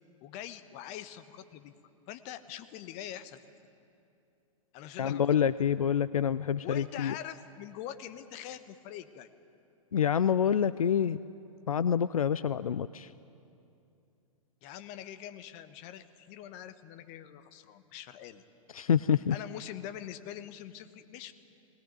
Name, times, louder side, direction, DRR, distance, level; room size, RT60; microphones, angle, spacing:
voice 1, 0.2-1.7 2.1-3.4 4.7-5.4 6.6-9.3 14.6-18.4 19.3-21.3, left 11 dB, 40° left, 11 dB, 1.2 m, -44 dB
voice 2, 5.0-7.1 9.9-11.2 11.7-13.1 18.7-19.4, left 8 dB, 80° left, 16 dB, 0.5 m, -27 dB
21.0 x 18.5 x 9.4 m, 2.7 s
figure-of-eight pair, 105°, 18 cm